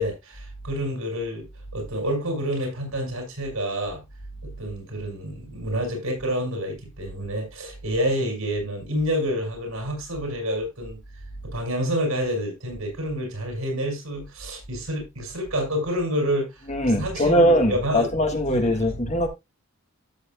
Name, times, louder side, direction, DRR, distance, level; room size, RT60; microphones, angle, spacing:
voice 1, 0.0-1.5 1.7-4.0 4.4-11.0 11.4-16.6 17.0-18.1 18.5-18.9, equal, 85° right, 5.3 m, -28 dB
voice 2, 16.6-19.3, equal, 30° left, 1.6 m, -21 dB
13.5 x 7.5 x 2.3 m
head